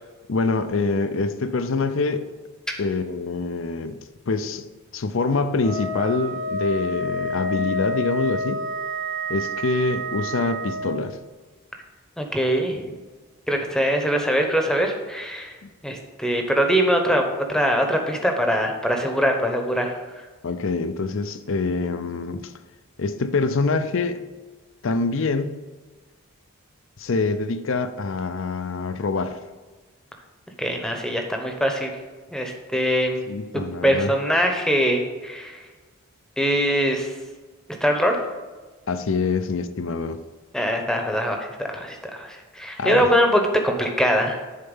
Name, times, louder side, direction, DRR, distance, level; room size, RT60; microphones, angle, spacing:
voice 1, 0.3-2.3 2.8-4.0 4.3-8.6 9.3-11.2 15.6-15.7 20.4-22.5 23.0-24.2 24.8-25.6 27.0-29.4 33.3-34.1 38.9-40.2 42.8-43.1, left 3 dB, 60° left, 0.5 m, -25 dB
Wind instrument woodwind instrument, 5.6-10.9, equal, 80° right, 2.7 m, -29 dB
voice 2, 12.2-12.9 13.5-15.6 15.8-17.2 17.5-20.0 30.6-31.9 32.3-33.2 33.8-35.6 36.4-37.1 37.8-38.2 40.5-44.4, equal, 5° left, 0.9 m, -22 dB
10.5 x 4.4 x 5.5 m
head